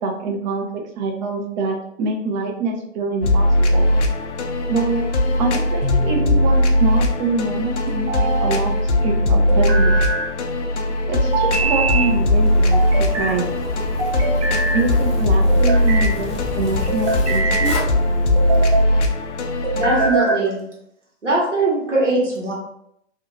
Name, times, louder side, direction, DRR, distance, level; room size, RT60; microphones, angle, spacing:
voice 1, 0.0-3.9 4.7-5.1 5.4-9.9 11.1-13.6 14.7-17.8, right 3 dB, 40° right, 1 dB, 0.8 m, -25 dB
sound 1, 3.2-20.1, left 1 dB, 70° left, 0.6 m, -19 dB
sound 2, 5.8-6.5 7.9-8.6 9.5-10.3 11.3-12.1 12.7-13.4 14.0-14.9 15.5-16.1 16.9-17.8 18.3-18.9 19.6-20.5, right 3 dB, 65° right, 1.0 m, -24 dB
Zipper (clothing), 11.3-18.8, left 4 dB, 15° left, 0.8 m, -32 dB
voice 2, 19.7-20.6 21.2-22.5, right 2 dB, 85° right, -4 dB, 1.4 m, -20 dB
2.8 x 2.6 x 3.4 m, 0.75 s
figure-of-eight pair, 105°, 36 cm